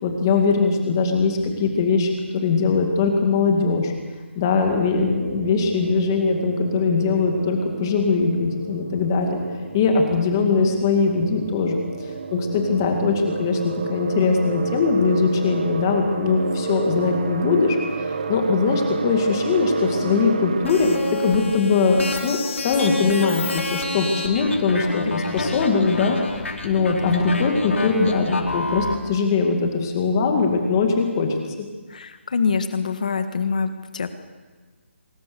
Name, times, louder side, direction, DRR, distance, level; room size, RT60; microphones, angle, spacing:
voice 1, 0.0-3.9 4.3-9.4 9.7-11.8 12.3-26.2 26.6-31.7, left 4 dB, 15° left, 3 dB, 2.1 m, -21 dB
sound 1, 5.0-21.6, right 4 dB, 35° right, 1.4 m, -31 dB
sound 2, 20.6-28.9, left 3 dB, 80° left, 4.8 m, -29 dB
voice 2, 31.9-34.1, left 5 dB, 35° left, 9 dB, 1.7 m, -25 dB
24.5 x 22.0 x 7.0 m, 1.4 s
hypercardioid pair, 180°, 7 cm